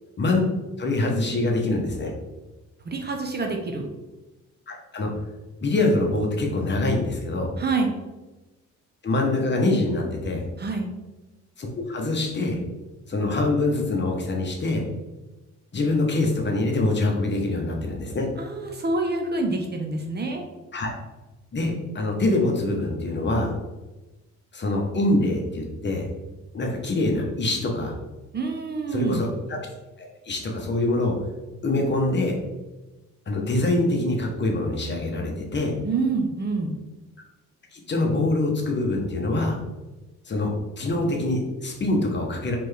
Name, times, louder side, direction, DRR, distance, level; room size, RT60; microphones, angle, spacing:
voice 1, 0.8-2.1 4.7-5.1 5.6-7.5 9.0-10.4 11.6-12.6 13.1-14.8 15.7-18.3 20.7-20.9 21.5-23.5 24.5-26.1 26.5-28.0 28.9-29.6 30.0-31.1 31.6-32.4 33.3-35.7 37.7-39.6 40.3-42.6, left 2 dB, 35° left, 0 dB, 1.1 m, -24 dB
voice 2, 2.8-3.9 7.6-7.9 10.6-10.9 18.4-20.5 28.3-29.2 35.8-36.7, right 3 dB, 35° right, 3 dB, 0.7 m, -27 dB
4.2 x 3.3 x 3.3 m, 1.1 s
cardioid pair, 90°, 30 cm